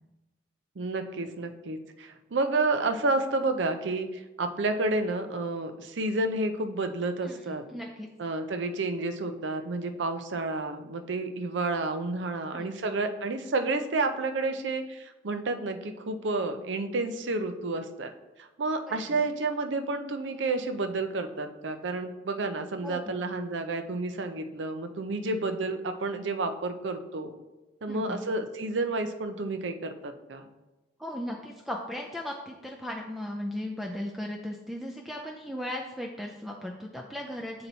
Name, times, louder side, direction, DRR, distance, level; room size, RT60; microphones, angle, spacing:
voice 1, 0.8-7.6 8.2-18.1 18.4-27.3 27.8-30.4, right 2 dB, 75° right, 7 dB, 0.5 m, -30 dB
voice 2, 7.7-8.1 12.5-12.7 18.9-19.1 22.8-23.2 25.3-25.4 27.9-28.2 31.0-37.7, left 1 dB, ahead, 0 dB, 0.3 m, -37 dB
8.3 x 2.9 x 4.0 m, 1.1 s
head